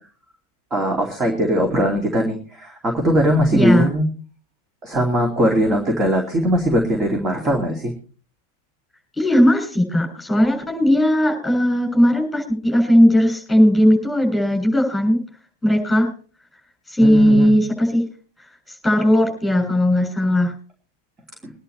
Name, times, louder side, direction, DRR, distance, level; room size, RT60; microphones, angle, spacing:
voice 1, 0.7-4.0 4.8-7.9 17.0-17.5, equal, 20° right, 1 dB, 2.8 m, -20 dB
voice 2, 3.5-3.9 9.2-15.2 15.6-16.1 16.9-18.1 18.8-20.5, equal, 5° left, 2 dB, 7.0 m, -17 dB
23.0 x 11.0 x 3.2 m, 0.38 s
figure-of-eight pair, 90°, 0 cm